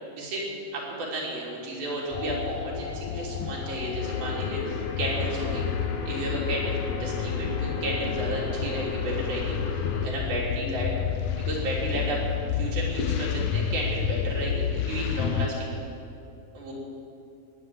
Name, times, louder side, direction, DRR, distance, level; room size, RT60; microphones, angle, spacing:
voice 1, 0.1-0.5 0.7-5.7 6.1-10.9 11.4-12.2 12.5-15.7 16.5-16.7, right 1 dB, 75° right, -4 dB, 4.9 m, -32 dB
sound 1, 2.1-15.5, left 8 dB, 85° left, 1.5 m, -30 dB
sound 2, 4.0-10.1, left 4 dB, 55° left, 1.8 m, -36 dB
19.0 x 9.5 x 7.5 m, 2.7 s
omnidirectional pair, 4.3 m